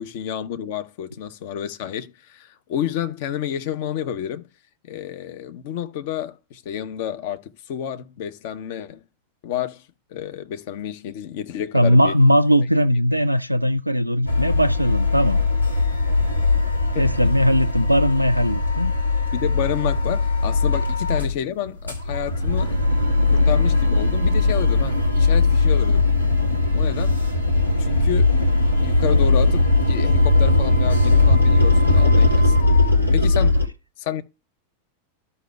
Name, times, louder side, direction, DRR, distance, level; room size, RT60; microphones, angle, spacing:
voice 1, 0.0-4.5 4.9-9.0 9.4-12.1 16.9-17.3 19.3-22.8 23.3-26.1 26.7-27.2 27.8-28.3 28.8-32.5 33.1-33.6 34.0-34.2, left 10 dB, 50° left, 0.8 m, -30 dB
voice 2, 11.7-15.4 16.9-18.9 33.4-33.5, equal, 90° right, 0.4 m, -19 dB
sound 1, 14.3-21.4 21.7-33.7, left 3 dB, 85° left, 1.3 m, -19 dB
13.0 x 5.4 x 2.2 m
figure-of-eight pair, 90°, 0 cm